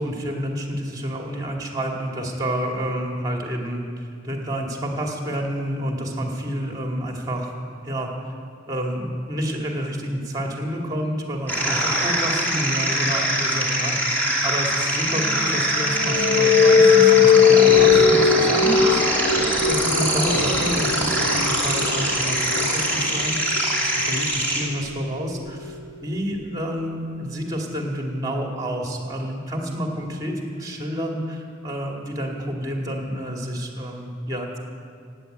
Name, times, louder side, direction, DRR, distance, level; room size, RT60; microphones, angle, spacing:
voice 1, 0.0-3.9 4.2-7.5 7.8-8.1 8.7-19.0 19.7-25.7 26.0-34.6, equal, 20° right, 0 dB, 2.2 m, -29 dB
sound 1, 11.5-24.6, right 1 dB, 10° left, 2.7 m, -23 dB
sound 2, 15.0-26.5, left 6 dB, 70° left, 3.4 m, -20 dB
16.0 x 9.2 x 8.9 m, 2.2 s
head